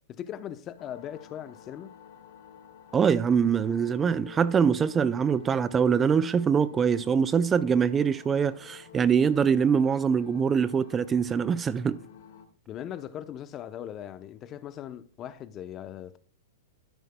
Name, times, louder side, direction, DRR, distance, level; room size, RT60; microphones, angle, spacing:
voice 1, 0.1-1.9 12.7-16.2, left 10 dB, 30° left, 0.7 m, -39 dB
sound 1, 0.8-12.5, left 7 dB, 65° left, 2.0 m, -50 dB
voice 2, 2.9-12.0, right 7 dB, 20° right, 0.4 m, -24 dB
12.5 x 10.0 x 2.2 m
hypercardioid pair, 120°, 0 cm